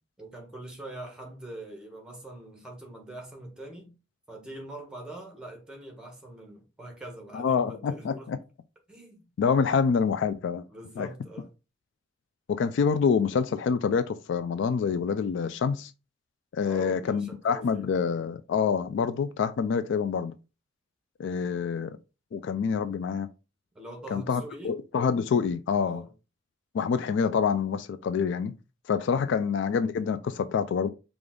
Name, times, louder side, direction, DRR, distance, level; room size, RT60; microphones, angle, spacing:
voice 1, 0.2-3.9 4.3-8.3 8.9-9.3 10.7-11.5 16.6-17.9 23.7-24.8 25.8-26.1 29.0-29.3, right 2 dB, 5° right, 1.1 m, -43 dB
voice 2, 7.3-8.4 9.4-10.6 11.0-11.1 12.5-15.9 16.5-20.3 21.2-22.0 22.3-23.3 24.1-26.0 26.7-28.5 28.9-30.9, left 6 dB, 60° left, 0.3 m, -26 dB
5.0 x 2.4 x 3.7 m
head